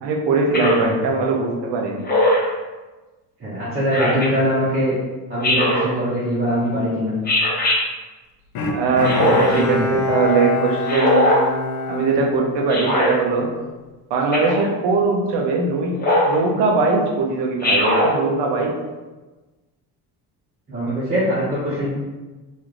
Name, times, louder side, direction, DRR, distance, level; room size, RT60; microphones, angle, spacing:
voice 1, 0.0-2.0 8.7-11.4 11.9-13.5 14.1-18.7, right 4 dB, 85° right, 0 dB, 0.8 m, -21 dB
Speech synthesizer, 0.5-0.9 2.1-2.5 3.9-4.3 5.4-5.9 7.3-7.8 9.0-9.6 10.9-11.4 12.7-13.1 14.3-14.7 16.0-16.4 17.6-18.1, left 1 dB, 25° left, 0.9 m, -19 dB
voice 2, 3.4-5.0 5.3-7.1 9.1-9.9 20.7-21.9, equal, 25° right, -11 dB, 0.8 m, -22 dB
Bowed string instrument, 8.5-13.0 13.5-13.6, left 3 dB, 65° left, 0.6 m, -25 dB
3.1 x 2.6 x 3.8 m, 1.2 s
cardioid pair, 175°, 41 cm